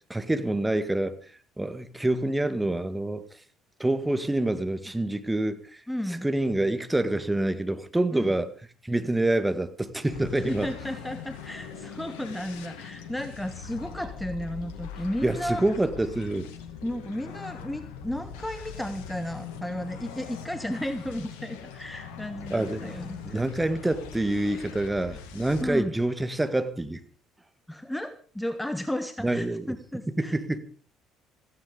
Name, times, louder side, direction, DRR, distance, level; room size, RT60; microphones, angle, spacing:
voice 1, 0.1-1.2 1.6-3.2 3.8-5.8 6.2-8.5 8.8-10.7 15.2-16.5 22.5-22.9 23.3-27.0 29.2-29.7 30.2-30.6, right 1 dB, 10° right, 1.9 m, -26 dB
voice 2, 5.9-6.3 8.1-8.3 10.4-15.6 16.8-23.4 25.6-25.9 27.7-30.4, left 1 dB, 5° left, 1.5 m, -33 dB
sound 1, 10.1-25.7, left 7 dB, 65° left, 2.3 m, -42 dB
16.5 x 16.0 x 5.2 m
figure-of-eight pair, 55°, 0 cm